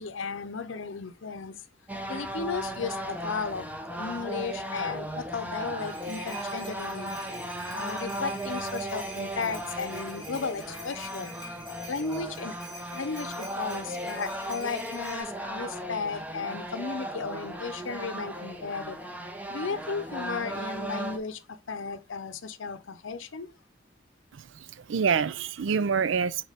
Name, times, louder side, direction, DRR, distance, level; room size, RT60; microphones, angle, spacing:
voice 1, 0.0-1.6 2.1-7.1 7.7-11.3 11.9-12.6 12.9-19.0 19.5-23.5, left 5 dB, 85° left, 0.7 m, -35 dB
sound 1, 1.9-21.2, right 1 dB, 10° right, 0.8 m, -36 dB
sound 2, 5.5-15.2, right 1 dB, 25° right, 2.6 m, -46 dB
voice 2, 24.3-26.4, right 6 dB, 80° right, 0.4 m, -27 dB
6.5 x 4.4 x 3.5 m
head